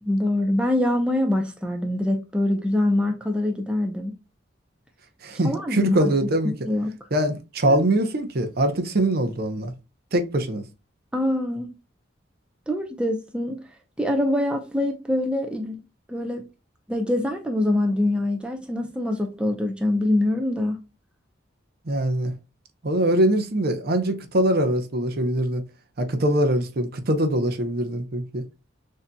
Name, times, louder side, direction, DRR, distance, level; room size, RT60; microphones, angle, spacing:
voice 1, 0.0-4.1 5.4-6.1 6.7-7.0 7.6-7.8 11.1-11.7 12.7-13.6 14.0-15.8 16.1-16.4 16.9-20.8, left 1 dB, 5° right, 0.5 m, -24 dB
voice 2, 5.2-6.5 7.1-9.7 10.1-10.6 21.9-22.3 22.8-25.6 26.0-28.4, right 1 dB, 50° right, 0.7 m, -23 dB
6.4 x 2.7 x 2.2 m
head